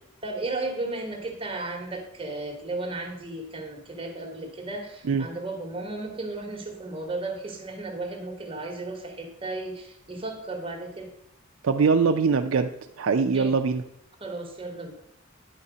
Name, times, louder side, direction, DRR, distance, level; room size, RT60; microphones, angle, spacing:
voice 1, 0.2-11.1 13.3-13.5 14.2-14.9, right 2 dB, 25° right, 2 dB, 1.1 m, -34 dB
voice 2, 11.6-12.7 13.0-13.8, right 5 dB, 70° right, 5 dB, 0.4 m, -22 dB
10.0 x 4.2 x 4.9 m, 0.77 s
head